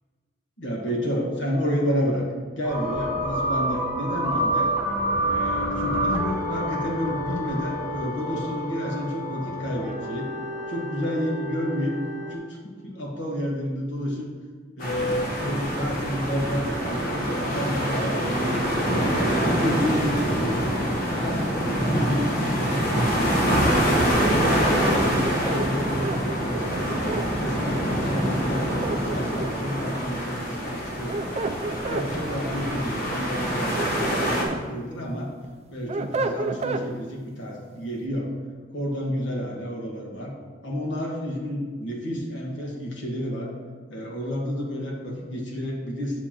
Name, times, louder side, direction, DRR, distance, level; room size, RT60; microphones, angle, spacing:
voice 1, 0.6-2.2 2.6-4.7 5.1-10.3 10.7-14.3 14.8-19.1 19.5-20.6 21.1-23.7 24.2-27.0 27.4-35.3 35.7-38.3 38.7-40.3 40.6-43.5 43.9-46.2, equal, 70° left, -1 dB, 1.5 m, -30 dB
sound 1, 2.6-12.3, right 1 dB, 15° right, 1.2 m, -28 dB
sound 2, 14.8-34.4, equal, 50° left, 1.3 m, -25 dB
sound 3, 25.2-27.3 28.6-29.7 30.8-32.1 33.5-34.6 35.1-36.9, right 3 dB, 35° right, 0.4 m, -31 dB
8.1 x 7.4 x 2.9 m, 1.5 s
head